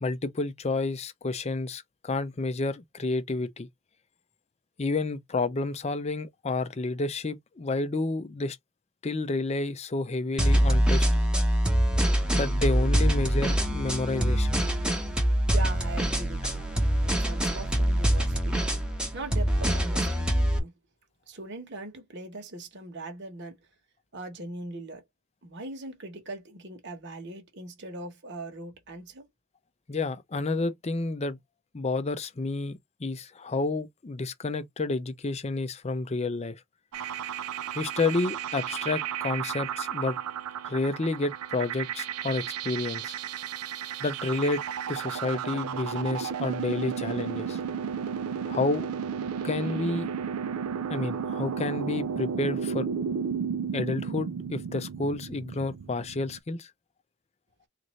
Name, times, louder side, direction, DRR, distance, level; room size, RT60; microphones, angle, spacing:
voice 1, 0.0-3.7 4.8-8.6 9.0-11.1 12.3-14.6 29.9-31.4 31.7-36.6 37.7-40.2 40.7-43.2 44.0-44.6 44.9-47.6 48.5-48.9 49.4-50.1 50.9-52.9 53.7-56.7, left 3 dB, 30° left, 0.5 m, -30 dB
sound 1, 10.4-20.6, equal, 5° right, 0.8 m, -24 dB
voice 2, 15.5-18.6 19.1-20.8 21.3-23.6 24.1-25.0 25.4-29.3, right 2 dB, 55° right, 1.2 m, -40 dB
sound 2, 36.9-56.4, right 7 dB, 85° right, 0.4 m, -33 dB
3.9 x 2.6 x 3.1 m
head